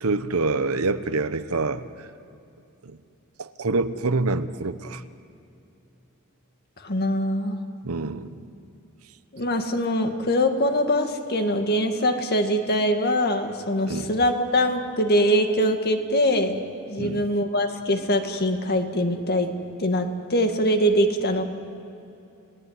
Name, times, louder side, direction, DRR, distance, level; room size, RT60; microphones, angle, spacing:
voice 1, 0.0-1.8 2.8-3.0 3.4-5.0 7.8-8.3 13.9-14.1 17.0-17.3, right 3 dB, 80° right, 12 dB, 1.0 m, -26 dB
voice 2, 6.8-7.6 9.3-16.6 16.9-19.5 19.8-21.4, equal, 45° left, 6 dB, 2.0 m, -23 dB
30.0 x 18.0 x 9.6 m, 2.7 s
head